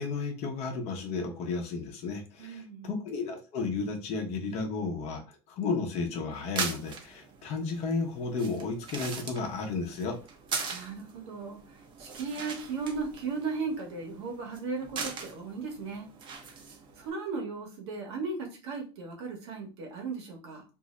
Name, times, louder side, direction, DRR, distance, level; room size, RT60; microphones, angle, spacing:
voice 1, 0.0-5.2 5.5-10.2, left 4 dB, 50° left, 1 dB, 0.8 m, -33 dB
voice 2, 2.4-2.9 10.7-11.6 12.0-16.1 17.0-20.6, right 4 dB, 75° right, 1 dB, 1.1 m, -36 dB
sound 1, 6.3-17.1, right 5 dB, 35° right, 0.7 m, -41 dB
2.6 x 2.0 x 3.6 m, 0.35 s
supercardioid pair, 105°, 14 cm